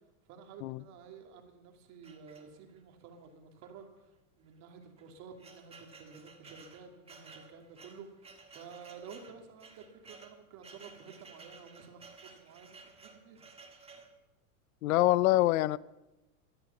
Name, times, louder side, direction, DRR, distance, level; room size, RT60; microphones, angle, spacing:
voice 1, 0.3-3.9 4.4-13.4, right 6 dB, 40° right, 4 dB, 2.6 m, -52 dB
sound 1, 2.0-2.9 3.6-3.8 4.0-4.1 4.8-14.2, right 4 dB, 15° right, 1.6 m, -55 dB
voice 2, 14.8-15.8, left 16 dB, 75° left, 20 dB, 0.6 m, -25 dB
13.0 x 12.0 x 7.1 m, 1.0 s
supercardioid pair, 140°, 43 cm